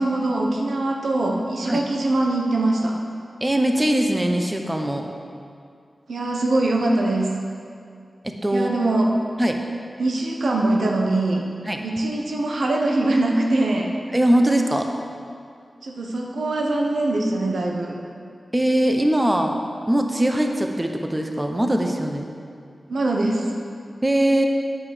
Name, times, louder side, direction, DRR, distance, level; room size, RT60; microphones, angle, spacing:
voice 1, 0.0-2.9 6.1-7.3 8.5-9.1 10.0-11.4 11.8-13.9 15.8-18.0 22.9-23.5, right 2 dB, 85° right, 0 dB, 1.0 m, -22 dB
voice 2, 3.4-5.1 8.2-8.7 9.4-9.6 11.6-11.8 14.1-14.9 18.5-19.5 19.9-22.3 24.0-24.5, right 1 dB, 20° right, 3 dB, 0.9 m, -21 dB
9.1 x 5.5 x 6.4 m, 2.3 s
cardioid pair, 40°, 0 cm